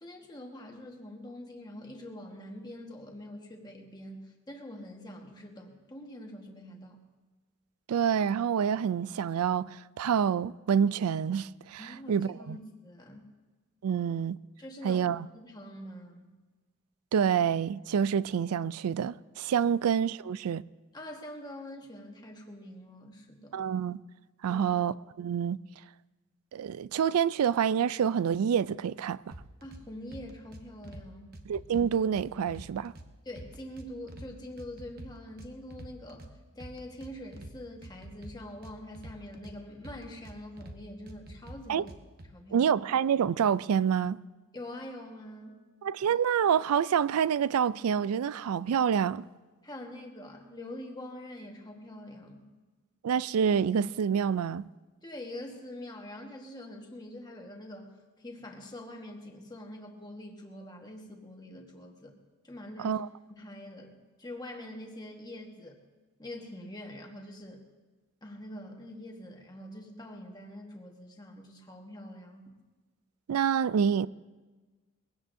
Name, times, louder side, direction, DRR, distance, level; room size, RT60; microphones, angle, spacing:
voice 1, 0.0-7.0 11.8-13.3 13.9-14.0 14.6-15.1 15.3-16.3 20.9-23.7 24.5-24.7 29.6-31.3 33.2-41.9 42.3-42.7 44.5-45.6 49.6-52.4 55.0-62.1 62.4-63.0 63.4-65.8 66.2-67.6 68.2-72.5, left 1 dB, 20° left, 1.4 m, -45 dB
voice 2, 7.9-12.6 13.8-14.4 14.8-15.3 17.1-20.6 23.5-24.0 24.4-25.6 26.5-29.2 31.5-32.9 41.7-41.8 42.5-44.2 45.8-49.2 53.0-54.7 62.8-63.1 73.3-74.1, right 7 dB, 80° right, 0.3 m, -27 dB
sound 1, 29.3-29.8 30.1-31.0 31.3-33.1 33.4-34.3 34.6-36.3 36.6-37.5 37.8-39.5 39.8-40.8 41.1-42.3, right 1 dB, 45° right, 1.1 m, -46 dB
22.0 x 16.5 x 2.7 m
head